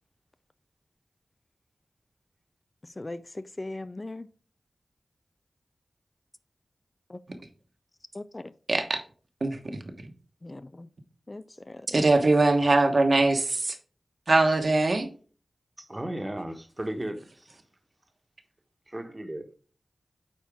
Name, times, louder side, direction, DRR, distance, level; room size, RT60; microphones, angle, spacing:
voice 1, 2.8-4.3 7.1-7.2 8.1-8.5 10.4-10.9 11.3-12.0, left 2 dB, 35° left, 0.4 m, -39 dB
voice 2, 9.4-9.8 11.9-13.7 14.3-15.1, right 2 dB, 55° right, 1.2 m, -22 dB
voice 3, 15.8-17.6 18.9-19.5, right 1 dB, 25° right, 1.2 m, -35 dB
8.6 x 4.4 x 3.5 m
wide cardioid pair, 75°, 0 cm